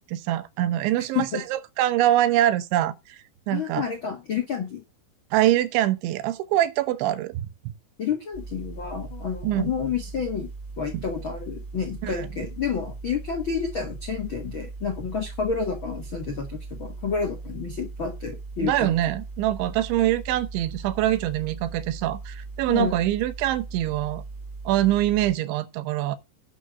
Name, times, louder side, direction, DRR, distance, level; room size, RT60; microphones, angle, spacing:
voice 1, 0.0-3.9 5.3-7.5 9.4-9.7 10.9-11.0 12.0-12.3 18.6-24.2 24.7-26.2, right 13 dB, 85° right, 3.3 m, -24 dB
voice 2, 3.5-4.8 8.0-10.5 10.8-18.9 22.7-22.9, left 6 dB, 85° left, 1.1 m, -29 dB
sound 1, 8.3-25.3, right 3 dB, 25° right, 6.2 m, -39 dB
11.5 x 6.4 x 5.2 m
omnidirectional pair, 5.3 m